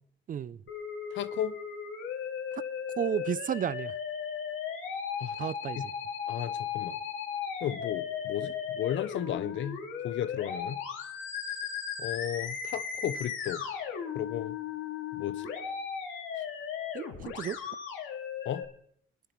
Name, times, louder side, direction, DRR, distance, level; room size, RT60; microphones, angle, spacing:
voice 1, 0.3-0.6 2.5-2.6 3.0-3.9 5.4-5.9 16.9-17.6, right 9 dB, 45° right, 0.4 m, -32 dB
Musical instrument, 0.7-18.6, left 7 dB, 90° left, 2.1 m, -36 dB
voice 2, 1.1-1.6 5.2-5.4 6.3-7.0 7.6-10.8 12.0-13.6 14.1-14.5 15.1-15.5 18.5-18.6, left 10 dB, 70° left, 0.7 m, -34 dB
23.0 x 11.0 x 3.1 m
cardioid pair, 90°, 20 cm